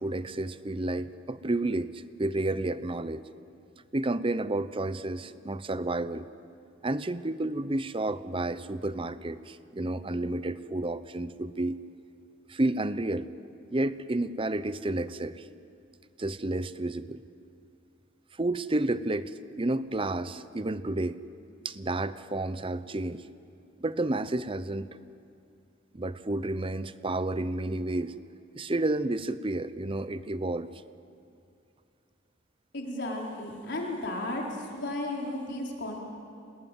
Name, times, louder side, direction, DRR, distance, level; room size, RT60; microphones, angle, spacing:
voice 1, 0.0-3.2 3.9-6.3 6.8-11.8 12.5-13.3 13.7-15.5 16.2-17.2 18.4-21.2 21.6-23.2 23.8-24.9 25.9-28.2 28.6-30.7, right 2 dB, 25° right, 14 dB, 0.7 m, -31 dB
voice 2, 32.7-34.4 34.7-36.0, left 1 dB, 60° left, -1 dB, 4.5 m, -34 dB
27.5 x 19.5 x 9.4 m, 2.5 s
head